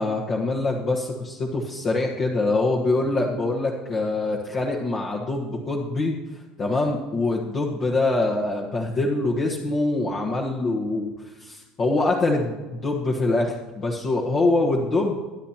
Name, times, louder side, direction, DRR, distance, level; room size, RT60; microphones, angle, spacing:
voice 1, 0.0-6.2 6.6-15.2, left 2 dB, 30° left, -2 dB, 1.4 m, -24 dB
23.5 x 10.0 x 3.0 m, 1.3 s
cardioid pair, 150°, 0 cm